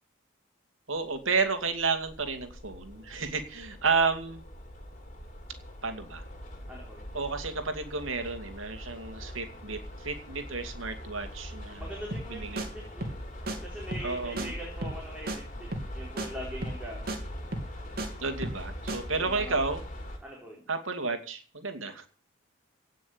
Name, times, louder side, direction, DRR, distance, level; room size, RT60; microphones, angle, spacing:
voice 1, 0.9-4.4 5.8-6.2 7.1-11.9 12.3-12.6 14.0-14.5 18.2-19.8 20.7-22.1, right 4 dB, 75° right, 8 dB, 2.5 m, -31 dB
sound 1, 1.0-20.2, equal, 35° left, 3.6 m, -42 dB
voice 2, 6.7-7.1 11.7-13.1 13.6-15.7 15.9-17.1 19.1-19.6 20.2-20.7, equal, 5° right, -4 dB, 4.8 m, -42 dB
sound 2, 12.1-12.3 12.6-12.7 13.0-13.2 13.5-13.6 13.9-14.1 14.4-14.5 14.8-15.0 15.3-15.4 15.7-16.3 16.6-16.8 17.1-17.2 17.5-18.1 18.4-18.6 18.9-19.0, right 1 dB, 50° right, 3.2 m, -34 dB
17.5 x 6.3 x 8.8 m, 0.39 s
head